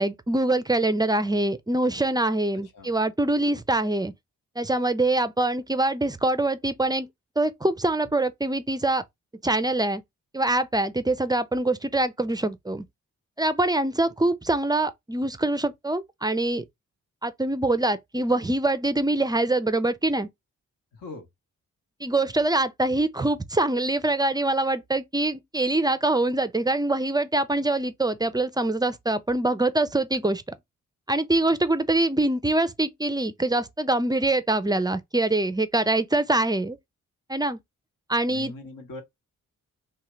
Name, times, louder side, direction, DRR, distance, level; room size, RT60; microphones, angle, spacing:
voice 1, 0.0-4.1 4.6-7.1 7.4-9.0 9.4-10.0 10.3-12.8 13.4-16.6 17.2-20.3 22.0-30.4 31.1-36.8 37.3-37.6 38.1-38.5, right 2 dB, 10° right, 0.4 m, -24 dB
voice 2, 20.9-21.3 38.3-39.0, left 3 dB, 65° left, 1.0 m, -40 dB
2.8 x 2.3 x 3.1 m
supercardioid pair, 45°, 35 cm